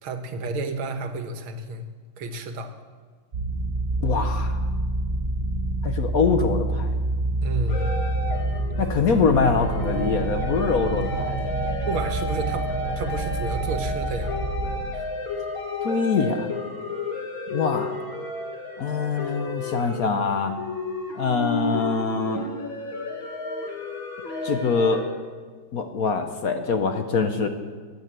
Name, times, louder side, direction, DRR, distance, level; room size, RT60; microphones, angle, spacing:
voice 1, 0.0-1.9 2.2-2.7 7.4-7.9 11.9-12.7 13.0-14.3 14.9-15.1, right 3 dB, 90° right, 7 dB, 2.1 m, -31 dB
sound 1, 3.3-14.7, right 2 dB, 35° right, 4.6 m, -27 dB
voice 2, 4.0-4.5 5.8-6.9 8.8-11.4 15.8-16.5 17.5-17.9 18.8-20.5 21.2-22.4 24.4-25.0 25.7-27.5, left 5 dB, 55° left, 7 dB, 1.1 m, -24 dB
sound 2, 7.7-25.0, left 2 dB, 70° left, 2.7 m, -32 dB
17.0 x 9.2 x 7.5 m, 1.5 s
omnidirectional pair, 2.2 m